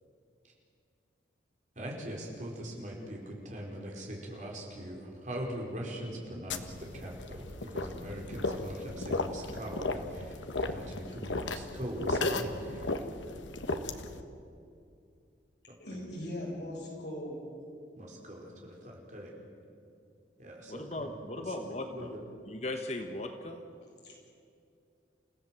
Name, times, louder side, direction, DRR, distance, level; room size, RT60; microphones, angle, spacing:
voice 1, 1.7-7.4 7.7-12.9 16.0-16.1 18.0-19.3 20.4-20.8 21.9-22.1, equal, 40° right, 4.8 m, -41 dB
sound 1, 6.5-14.2, left 2 dB, 85° left, 1.4 m, -35 dB
voice 2, 15.8-17.4 24.0-24.2, left 1 dB, 65° left, 7.4 m, -39 dB
voice 3, 20.7-22.2 22.5-23.7, left 2 dB, 35° left, 1.2 m, -38 dB
29.5 x 16.0 x 7.7 m
head